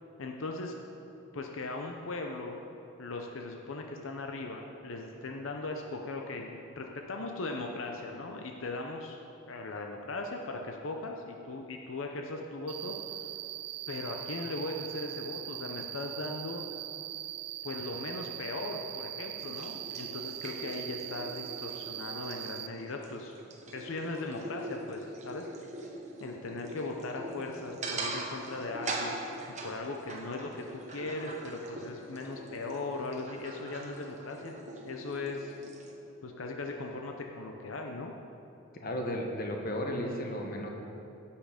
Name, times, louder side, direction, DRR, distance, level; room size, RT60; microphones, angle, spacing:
voice 1, 0.2-0.7 1.3-2.6 3.0-9.2 9.5-12.9 13.9-16.6 17.6-23.3 23.7-25.5 26.2-29.1 29.6-34.6 34.8-35.5 36.2-38.1, left 2 dB, 75° left, 2 dB, 0.7 m, -38 dB
Cricket, 12.7-22.7, right 13 dB, 50° right, 0.4 m, -41 dB
sound 1, 19.4-35.9, right 2 dB, 35° right, 1.1 m, -42 dB
voice 2, 38.8-40.7, equal, 45° left, 1 dB, 1.2 m, -34 dB
16.5 x 5.7 x 5.1 m, 2.9 s
head